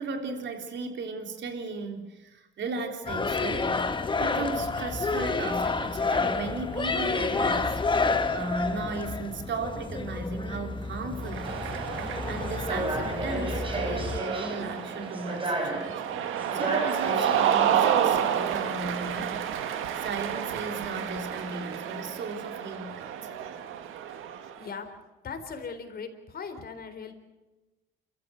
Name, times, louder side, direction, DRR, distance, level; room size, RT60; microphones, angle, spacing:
voice 1, 0.0-3.9 4.2-7.8 8.3-11.6 12.3-16.0 16.5-19.5 20.0-23.1, right 3 dB, 65° right, 3.7 m, -36 dB
sound 1, 3.1-14.2, left 4 dB, 25° left, 1.5 m, -29 dB
Cheering, 11.2-24.7, right 9 dB, 90° right, 1.7 m, -30 dB
sound 2, 11.4-21.9, right 2 dB, 25° right, 4.8 m, -35 dB
voice 2, 25.2-27.1, left 5 dB, 50° left, 4.0 m, -38 dB
28.0 x 14.5 x 8.1 m
cardioid pair, 90°, 20 cm